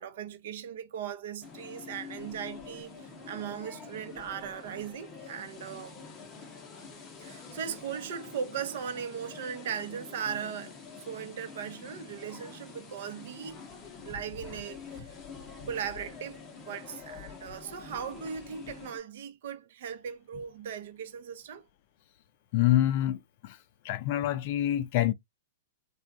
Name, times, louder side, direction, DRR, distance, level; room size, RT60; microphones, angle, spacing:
voice 1, 0.0-5.9 7.2-10.8 11.0-13.6 14.0-15.2 15.7-21.6, right 8 dB, 60° right, 0.7 m, -38 dB
sound 1, 1.4-19.0, left 5 dB, 20° left, 0.7 m, -46 dB
voice 2, 22.5-23.6 23.8-25.1, left 13 dB, 40° left, 0.4 m, -26 dB
3.5 x 2.3 x 2.5 m
supercardioid pair, 165°, 0 cm